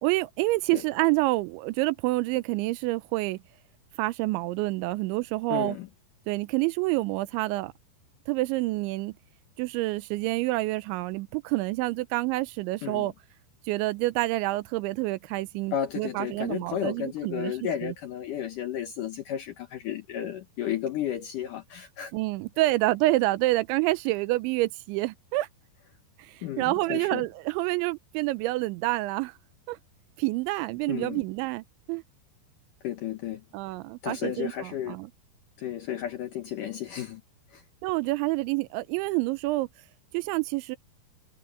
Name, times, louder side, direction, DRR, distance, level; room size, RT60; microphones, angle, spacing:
voice 1, 0.0-3.4 4.0-5.8 6.3-7.7 8.3-9.2 9.6-13.1 13.7-17.5 17.8-17.9 22.1-25.5 26.2-29.3 29.7-29.8 30.2-32.0 33.5-35.1 37.8-39.7 40.1-40.8, right 20 dB, 85° right, 3.1 m, -28 dB
voice 2, 5.5-5.9 12.8-13.1 15.7-22.1 26.4-27.3 30.9-31.2 32.8-33.4 34.0-35.0 35.6-37.2 37.5-37.6, left 10 dB, 70° left, 2.0 m, -33 dB
omnidirectional pair, 5.2 m